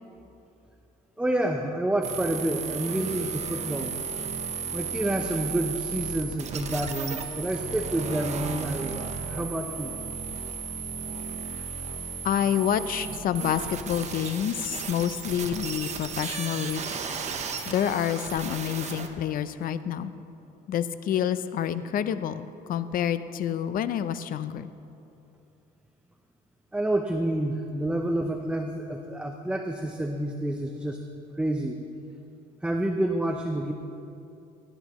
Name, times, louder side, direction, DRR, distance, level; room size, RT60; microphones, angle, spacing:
voice 1, 1.2-3.9 4.7-9.9 26.7-31.0 31.4-31.8 32.6-33.7, right 1 dB, 5° right, 4 dB, 0.6 m, -28 dB
sound 1, 2.0-19.1, right 6 dB, 45° right, 1.0 m, -34 dB
voice 2, 12.2-16.8 17.7-20.1 20.7-24.7, left 9 dB, 55° left, 13 dB, 0.5 m, -28 dB
17.0 x 10.5 x 3.1 m, 2.7 s
cardioid pair, 110°, 17 cm